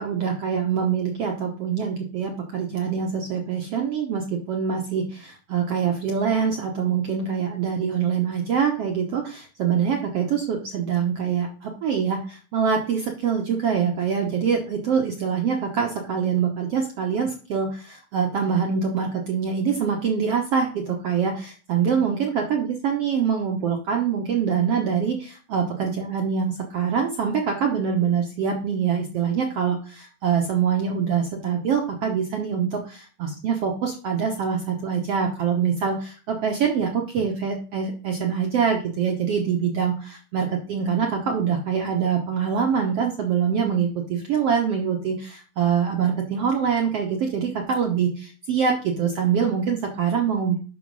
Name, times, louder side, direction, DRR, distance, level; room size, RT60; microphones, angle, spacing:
voice 1, 0.0-50.6, right 7 dB, 65° right, 2 dB, 1.5 m, -24 dB
8.2 x 6.3 x 5.4 m, 0.39 s
omnidirectional pair, 4.1 m